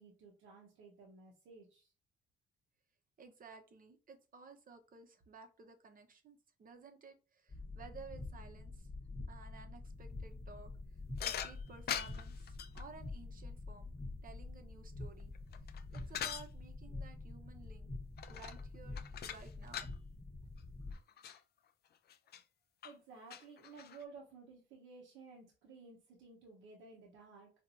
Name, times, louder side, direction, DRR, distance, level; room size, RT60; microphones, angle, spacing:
voice 1, 0.0-1.9 22.8-27.5, right 4 dB, 85° right, -2 dB, 1.0 m, -55 dB
voice 2, 3.2-8.9 9.3-10.7 11.2-13.9 14.2-15.3 15.9-17.9 18.3-19.9, right 4 dB, 45° right, 5 dB, 0.9 m, -55 dB
sound 1, 7.5-21.0, left 3 dB, 25° left, 1.0 m, -47 dB
sound 2, 11.2-12.8 15.2-16.5 18.2-18.7 19.0-20.0 20.6-20.7 20.9-21.4 22.1-22.4 22.8-22.9 23.3-24.0, left 9 dB, 55° left, 0.4 m, -42 dB
4.3 x 2.6 x 2.6 m, 0.33 s
cardioid pair, 90°, 20 cm